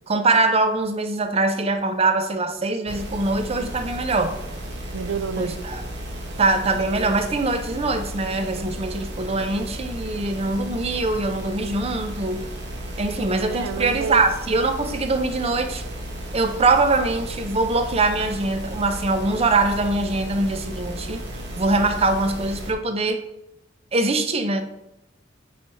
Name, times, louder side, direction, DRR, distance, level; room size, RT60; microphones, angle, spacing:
voice 1, 0.1-4.4 5.4-5.8 6.4-12.5 13.0-15.8 16.3-21.2 21.6-23.2 23.9-24.6, right 3 dB, 30° right, 0.6 m, -23 dB
sound 1, 2.9-22.7, equal, 60° right, 1.1 m, -34 dB
voice 2, 4.9-5.6 13.4-14.3, right 6 dB, 80° right, 0.4 m, -29 dB
9.0 x 3.3 x 4.1 m
head